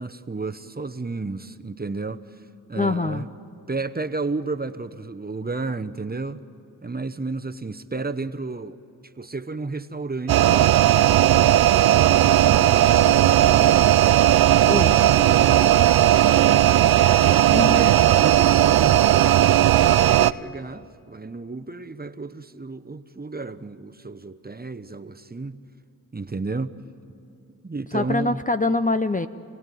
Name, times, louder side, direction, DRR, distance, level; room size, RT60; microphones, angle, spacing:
voice 1, 0.0-2.2 2.7-3.3 3.7-6.4 6.8-8.8 9.2-10.8 11.3-14.0 14.7-16.8 17.2-25.6 26.1-26.8 27.6-28.4, right 3 dB, 25° right, 1.0 m, -33 dB
voice 2, 2.8-3.3 14.7-15.0 17.5-17.9 27.9-29.3, left 2 dB, 20° left, 0.7 m, -24 dB
sound 1, 10.3-20.3, right 12 dB, 70° right, 0.5 m, -16 dB
sound 2, 12.4-17.5, right 1 dB, ahead, 1.5 m, -40 dB
27.5 x 17.5 x 9.3 m
cardioid pair, 50°, 39 cm